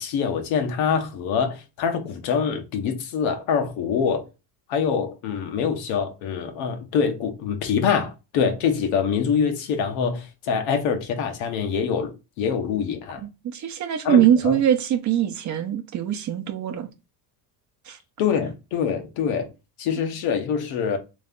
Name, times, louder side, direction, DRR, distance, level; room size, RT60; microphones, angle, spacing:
voice 1, 0.0-4.3 4.7-12.1 12.4-13.2 14.0-14.6 18.2-19.5 19.8-21.0, left 6 dB, 80° left, 1.1 m, -25 dB
voice 2, 13.4-16.9 17.9-18.0, right 10 dB, 40° right, 0.7 m, -22 dB
3.3 x 3.2 x 3.7 m
cardioid pair, 115°, 45 cm